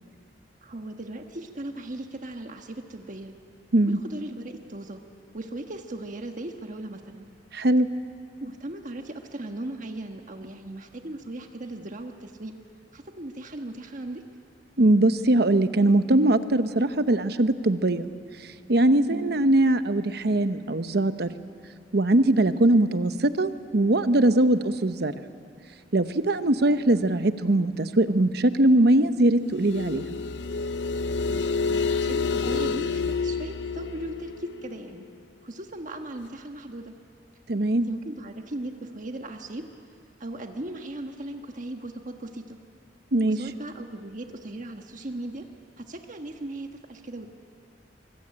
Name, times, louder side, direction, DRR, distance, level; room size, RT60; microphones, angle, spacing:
voice 1, 0.6-3.4 3.9-5.0 5.3-7.3 8.4-12.5 12.9-14.2 19.1-19.4 22.5-22.8 31.3-35.1 35.4-36.9 37.7-39.7 40.2-42.6 43.2-45.5 45.8-47.3, right 1 dB, 50° right, 4 dB, 1.3 m, -38 dB
voice 2, 7.5-7.9 14.8-18.1 18.7-21.3 21.9-25.1 25.9-30.0 37.5-37.9 43.1-43.4, right 1 dB, 65° right, 11 dB, 1.0 m, -21 dB
sound 1, 29.6-35.0, left 4 dB, 80° left, 0.6 m, -28 dB
24.0 x 23.0 x 8.7 m, 2.3 s
head